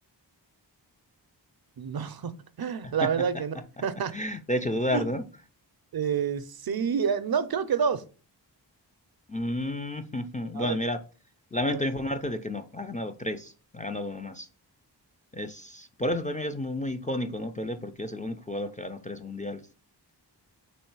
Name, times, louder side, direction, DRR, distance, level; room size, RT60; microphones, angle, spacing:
voice 1, 1.8-2.3 2.6-4.1 4.9-5.0 5.9-8.0 10.5-10.8 11.7-11.8, right 7 dB, 55° right, 0.5 m, -28 dB
voice 2, 4.1-5.2 9.3-11.0 11.5-14.5 15.3-19.6, left 1 dB, 20° left, 0.3 m, -31 dB
3.2 x 3.1 x 4.6 m
wide cardioid pair, 45°, 43 cm